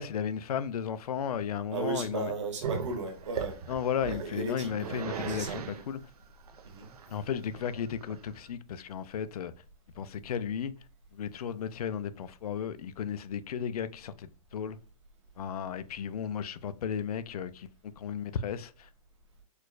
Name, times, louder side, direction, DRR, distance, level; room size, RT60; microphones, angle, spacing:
voice 1, 0.0-2.3 3.7-6.0 7.1-9.5 10.0-10.8 11.1-14.8 15.4-17.7 18.0-18.9, left 8 dB, 80° left, 0.4 m, -34 dB
voice 2, 1.7-3.6 4.0-5.6 6.6-6.9, right 3 dB, 50° right, 1.1 m, -36 dB
Growling, 2.6-8.5, right 6 dB, 80° right, 0.6 m, -39 dB
4.6 x 2.3 x 2.2 m
hypercardioid pair, 175°, 19 cm